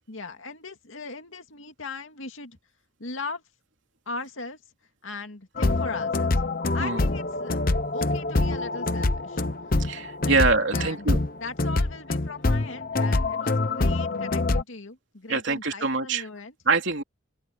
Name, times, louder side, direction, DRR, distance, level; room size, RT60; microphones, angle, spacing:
voice 1, 0.1-2.6 3.0-3.4 4.1-4.6 5.0-6.4 6.7-7.6 7.9-9.4 10.2-10.4 10.7-11.1 11.4-16.5, left 3 dB, 75° left, 2.3 m, -38 dB
sound 1, 5.6-14.6, left 2 dB, 45° left, 0.9 m, -25 dB
voice 2, 9.8-11.2 15.3-16.3 16.6-17.0, right 3 dB, 65° right, 3.2 m, -24 dB
open air
head